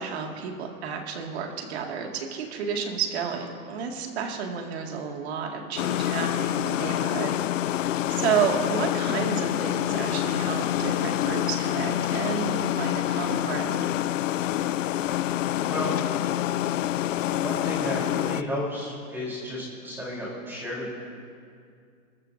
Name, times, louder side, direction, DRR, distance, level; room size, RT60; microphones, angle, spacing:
voice 1, 0.0-13.8, right 6 dB, 45° right, 2 dB, 2.1 m, -31 dB
sound 1, 5.8-18.4, left 12 dB, 60° left, 0.5 m, -27 dB
voice 2, 15.6-15.9 17.4-20.9, left 1 dB, 5° right, -5 dB, 3.6 m, -32 dB
26.0 x 14.0 x 2.7 m, 2.2 s
hypercardioid pair, 165°, 44 cm